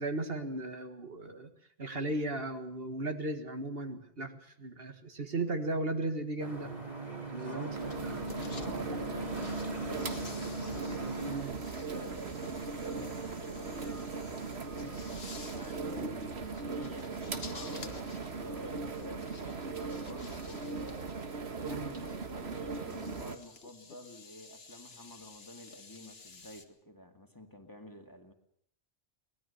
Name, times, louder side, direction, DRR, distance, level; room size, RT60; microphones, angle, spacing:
voice 1, 0.0-1.5 1.8-6.7 7.3-7.7 8.0-8.1 11.2-11.5 21.7-22.0, right 2 dB, 65° right, 7 dB, 2.0 m, -36 dB
sound 1, 6.4-11.4, right 1 dB, 30° right, 3.4 m, -39 dB
voice 2, 7.5-11.0 11.5-15.2 15.5-20.9 21.4-28.3, equal, 20° left, 5 dB, 2.1 m, -50 dB
sound 2, 7.7-23.4, right 4 dB, 80° right, 1.8 m, -39 dB
sound 3, 7.8-8.7 9.1-26.7, left 4 dB, 70° left, 2.0 m, -53 dB
23.5 x 19.0 x 7.1 m, 0.66 s
omnidirectional pair, 1.1 m